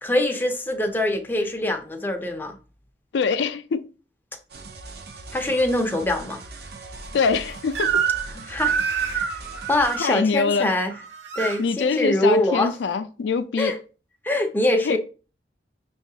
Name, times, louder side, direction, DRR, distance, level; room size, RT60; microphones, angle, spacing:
voice 1, 0.0-2.6 5.3-6.4 8.3-9.4 9.7-10.9 11.4-12.7 13.6-13.8 14.2-15.0, left 1 dB, 10° left, 0.5 m, -24 dB
voice 2, 3.1-3.9 7.1-8.0 10.0-10.7 11.6-13.8 14.8-15.0, left 5 dB, 80° left, 0.4 m, -24 dB
sound 1, 4.5-10.0, right 3 dB, 60° right, 0.5 m, -40 dB
Crying sobbing / Screech, 7.8-8.3 8.6-10.1 10.9-11.6, right 7 dB, 85° right, 0.9 m, -25 dB
5.9 x 2.3 x 2.7 m
head